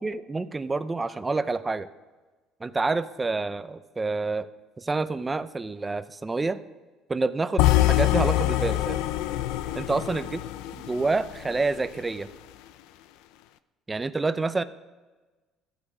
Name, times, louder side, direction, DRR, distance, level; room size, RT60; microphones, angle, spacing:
voice 1, 0.0-1.9 2.6-4.5 4.8-6.6 7.1-9.0 9.8-10.4 10.8-12.3 13.9-14.6, right 3 dB, 15° right, 13 dB, 0.5 m, -28 dB
sound 1, 7.6-11.7, left 15 dB, 85° left, 0.5 m, -24 dB
13.5 x 8.5 x 6.1 m, 1.2 s
cardioid pair, 140°, 0 cm